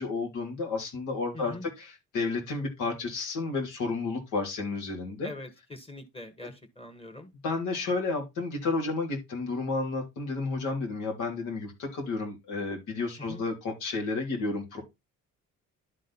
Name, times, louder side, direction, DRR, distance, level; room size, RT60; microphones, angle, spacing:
voice 1, 0.0-5.3 7.4-14.8, left 3 dB, 90° left, 3.1 m, -31 dB
voice 2, 1.3-1.7 5.2-7.3 13.2-13.4, left 1 dB, 20° left, 1.7 m, -43 dB
11.0 x 4.1 x 4.1 m
cardioid pair, 90°, 30 cm